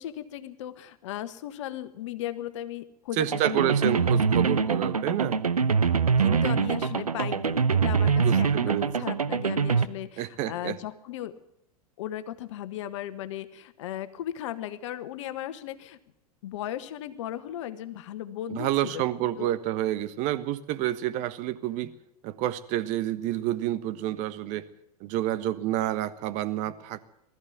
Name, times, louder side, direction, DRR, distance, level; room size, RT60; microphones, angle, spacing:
voice 1, 0.0-4.1 6.2-11.3 12.0-16.0 16.4-19.5, left 12 dB, 55° left, 13 dB, 1.5 m, -37 dB
voice 2, 3.2-5.4 6.2-6.4 8.2-8.9 10.2-10.8 18.5-21.9 22.2-24.7 25.0-27.0, right 13 dB, 40° right, 13 dB, 1.4 m, -29 dB
sound 1, 3.3-9.9, right 5 dB, 80° right, 1.0 m, -24 dB
20.0 x 14.0 x 9.4 m, 0.77 s
figure-of-eight pair, 90°, 19 cm